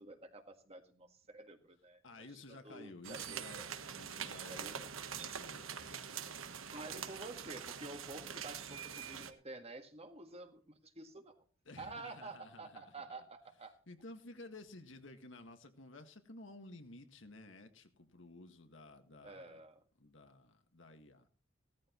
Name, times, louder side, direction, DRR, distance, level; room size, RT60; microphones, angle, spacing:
voice 1, 0.0-3.7 4.5-4.8 6.7-11.4 11.8-13.7 19.2-19.8, right 2 dB, 30° right, 6 dB, 1.7 m, -50 dB
voice 2, 2.0-3.6 3.9-6.6 6.9-7.1 11.7-13.1 13.9-19.6 20.0-21.3, left 2 dB, 65° left, 7 dB, 1.8 m, -54 dB
sound 1, 3.0-9.3, right 8 dB, 80° right, 1.3 m, -44 dB
17.0 x 13.5 x 3.1 m, 0.39 s
head